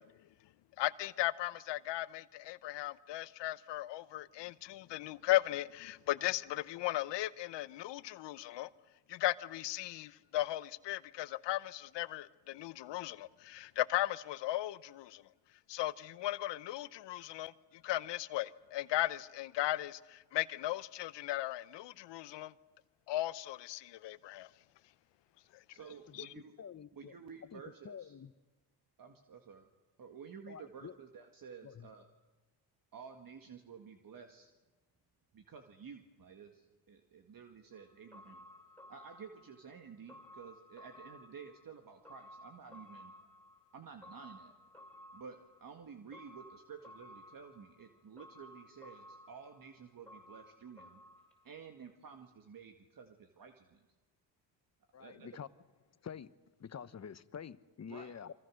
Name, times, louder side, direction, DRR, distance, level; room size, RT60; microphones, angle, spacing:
voice 1, 0.8-8.7 9.1-15.2 15.7-17.5 17.8-22.5 23.1-24.5 26.2-26.3, left 15 dB, 75° left, 0.9 m, -36 dB
voice 2, 25.7-26.5 26.9-28.2 29.0-29.7 30.0-32.1 32.9-34.5 35.3-38.4 38.9-43.1 43.7-44.5 45.1-51.0 51.4-53.8 55.0-55.3 57.9-58.1, right 6 dB, 50° right, 2.0 m, -52 dB
voice 3, 26.6-27.2 27.5-28.3 30.5-31.0 31.6-31.9 54.9-55.5 56.0-56.3 56.6-58.3, left 7 dB, 40° left, 1.1 m, -48 dB
sound 1, 37.7-51.9 52.2-52.3, left 1 dB, 5° left, 6.1 m, -57 dB
28.5 x 24.5 x 6.4 m
supercardioid pair, 65°, 43 cm